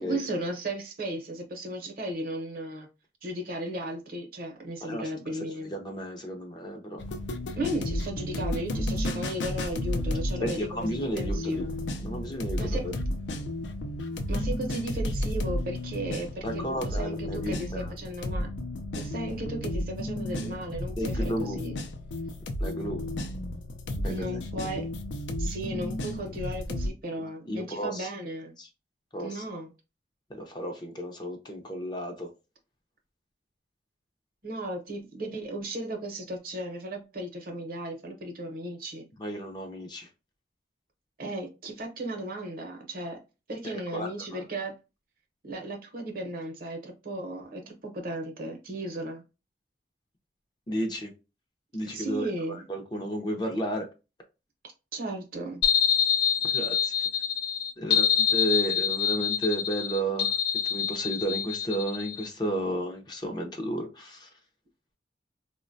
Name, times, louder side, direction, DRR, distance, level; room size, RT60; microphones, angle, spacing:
voice 1, 0.0-2.9 3.2-5.7 7.5-10.9 11.1-11.7 12.6-12.9 14.3-18.5 18.9-21.8 24.1-24.9 25.4-28.6 29.2-29.7 34.4-39.1 41.2-43.2 43.5-44.7 45.4-49.2 51.8-52.7 54.9-55.6, right 1 dB, 50° right, 0.7 m, -35 dB
voice 2, 4.8-5.1 5.7-7.0 10.4-11.6 12.0-12.9 16.4-17.9 20.9-21.6 22.6-23.0 24.0-24.3 27.5-28.1 28.6-28.7 29.1-29.4 30.4-32.3 39.2-40.1 43.9-44.4 50.7-51.1 51.7-53.9 56.5-56.9 57.8-60.4 60.6-64.3, right 1 dB, 25° left, 0.5 m, -33 dB
sound 1, 7.0-26.9, left 1 dB, 85° left, 0.5 m, -32 dB
sound 2, 55.6-62.3, left 8 dB, 60° left, 0.9 m, -26 dB
3.8 x 2.1 x 2.5 m
head